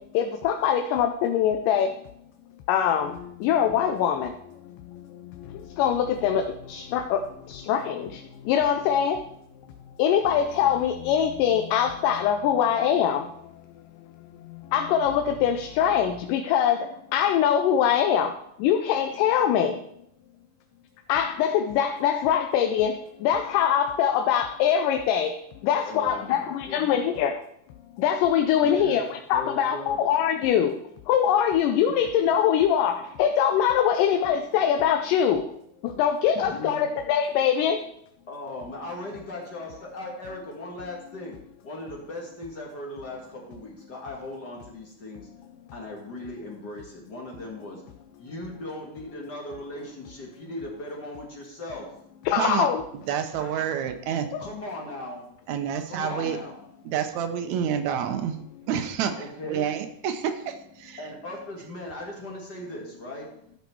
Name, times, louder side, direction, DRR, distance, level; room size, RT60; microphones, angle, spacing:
voice 1, 0.1-1.9 2.7-4.3 5.8-7.2 7.5-8.2 8.5-9.2 10.0-13.3 14.7-18.3 18.6-19.8 21.1-23.0 23.2-25.4 25.6-27.3 28.0-30.7 31.1-35.5 35.8-37.8 52.3-52.8 54.3-54.4, left 9 dB, 90° left, 6 dB, 2.3 m, -23 dB
sound 1, 3.0-16.2, left 10 dB, 70° left, 2.0 m, -46 dB
voice 2, 25.8-27.1 28.6-29.0 29.3-30.0 36.3-36.9 38.3-41.4 41.6-45.3 45.7-47.8 48.2-51.9 54.4-55.2 55.9-56.6 59.1-59.7 61.0-63.3, left 1 dB, 40° left, -1 dB, 1.7 m, -38 dB
voice 3, 52.4-52.7 53.1-54.3 55.5-56.4 56.9-58.4 58.7-59.2 59.4-61.0, right 8 dB, 70° right, 7 dB, 2.0 m, -28 dB
12.5 x 5.7 x 4.6 m, 0.73 s
omnidirectional pair, 3.7 m